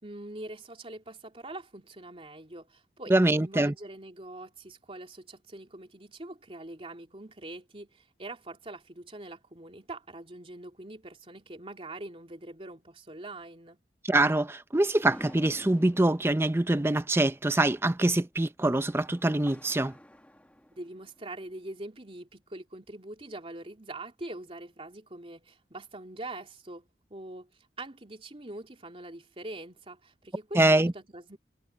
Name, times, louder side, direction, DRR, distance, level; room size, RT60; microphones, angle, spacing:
voice 1, 0.0-13.8 20.7-31.4, right 2 dB, 35° right, 3.2 m, -43 dB
voice 2, 3.1-3.7 14.0-19.9 30.6-30.9, right 2 dB, 15° right, 0.6 m, -24 dB
sound 1, 15.0-21.5, equal, 10° left, 1.6 m, -50 dB
head